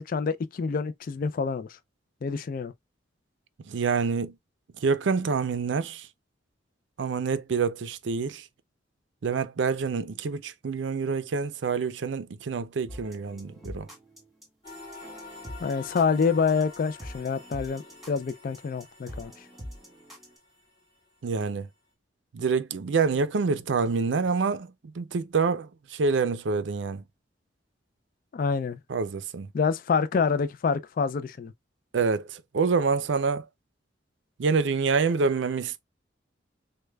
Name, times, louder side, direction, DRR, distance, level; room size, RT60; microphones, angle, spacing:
voice 1, 0.0-1.7 2.2-2.7 15.6-17.8 18.1-19.3 28.3-28.8 29.5-31.5, left 5 dB, 50° left, 0.3 m, -27 dB
voice 2, 3.7-4.4 4.8-6.1 7.0-8.5 9.2-13.9 21.2-21.7 22.3-27.0 28.9-29.5 31.9-33.5 34.4-35.8, right 5 dB, 75° right, 0.5 m, -27 dB
sound 1, 12.9-20.4, equal, ahead, 1.6 m, -44 dB
sound 2, 14.6-20.9, left 3 dB, 30° left, 2.1 m, -47 dB
6.3 x 2.2 x 2.2 m
head